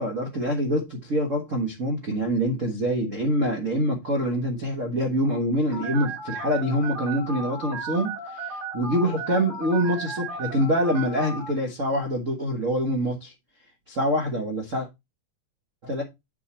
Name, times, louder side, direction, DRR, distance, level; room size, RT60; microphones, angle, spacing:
voice 1, 0.0-13.3 13.9-14.9 15.8-16.0, equal, 45° right, 1.0 m, -25 dB
Telephone, 5.7-11.5, right 3 dB, 85° right, 5.5 m, -35 dB
7.9 x 5.1 x 4.3 m
omnidirectional pair, 3.6 m